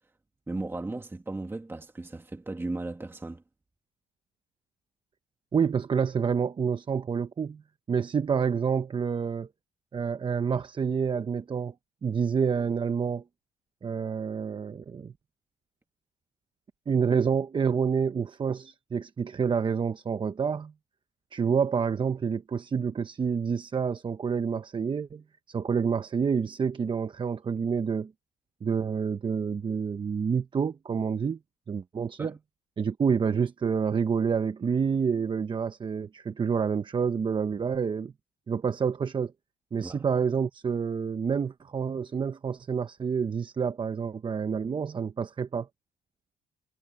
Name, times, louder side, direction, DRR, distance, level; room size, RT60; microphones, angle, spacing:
voice 1, 0.5-3.4 32.2-32.4 39.8-40.0, right 2 dB, 15° right, 2.1 m, -36 dB
voice 2, 5.5-7.6 7.9-9.5 9.9-11.7 12.0-13.2 13.8-15.1 16.9-20.7 21.3-28.1 28.6-31.4 31.7-32.3 32.8-38.1 38.5-39.3 39.7-45.7, right 6 dB, 30° right, 0.8 m, -28 dB
cardioid pair, 110°, 17 cm